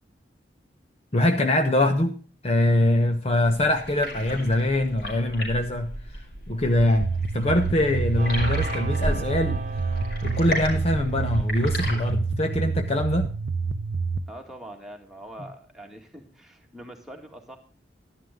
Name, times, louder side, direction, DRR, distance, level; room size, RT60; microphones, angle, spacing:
voice 1, 1.1-2.2 2.4-5.9 6.5-9.6 10.2-13.3, left 1 dB, 35° left, 6 dB, 0.9 m, -23 dB
sound 1, 3.3-12.1, equal, 65° left, 5.3 m, -34 dB
sound 2, 6.8-14.2, right 5 dB, 75° right, 0.6 m, -28 dB
sound 3, 8.2-11.9, right 2 dB, 40° right, 1.1 m, -40 dB
voice 2, 14.3-17.6, right 1 dB, ahead, 1 dB, 2.1 m, -43 dB
12.0 x 11.0 x 3.7 m, 0.39 s
head